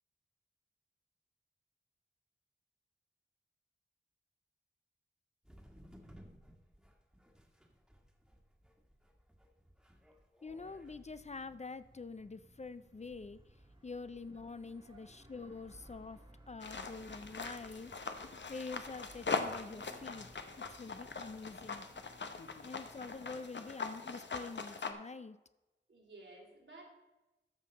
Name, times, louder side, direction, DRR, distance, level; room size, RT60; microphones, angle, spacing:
sound 1, 5.4-10.9, equal, 5° right, 1.6 m, -60 dB
voice 1, 10.4-13.4 13.8-18.1 18.5-20.3 20.6-21.9 22.6-25.4, left 4 dB, 35° left, 14 dB, 0.4 m, -46 dB
sound 2, 10.5-23.3, right 1 dB, 25° right, 1.6 m, -61 dB
sound 3, 16.6-24.9, left 4 dB, 65° left, 0.8 m, -41 dB
voice 2, 25.9-26.8, right 2 dB, 75° right, -2 dB, 2.7 m, -56 dB
13.5 x 5.7 x 4.1 m, 1.0 s
wide cardioid pair, 60°, 20 cm